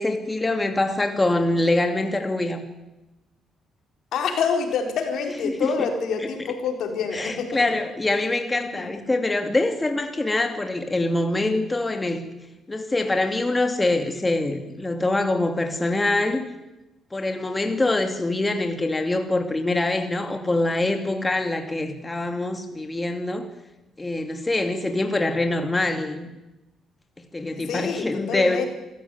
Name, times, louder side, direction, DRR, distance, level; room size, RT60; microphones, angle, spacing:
voice 1, 0.0-2.6 5.4-5.9 6.2-6.3 7.1-12.3 12.7-16.5 17.1-23.5 24.0-26.3 27.3-28.6, left 2 dB, 20° left, 6 dB, 2.4 m, -24 dB
voice 2, 4.1-7.6 8.6-8.9 27.6-28.7, left 6 dB, 75° left, 4 dB, 4.3 m, -27 dB
26.0 x 14.5 x 9.3 m, 1.0 s
cardioid pair, 90°, 0 cm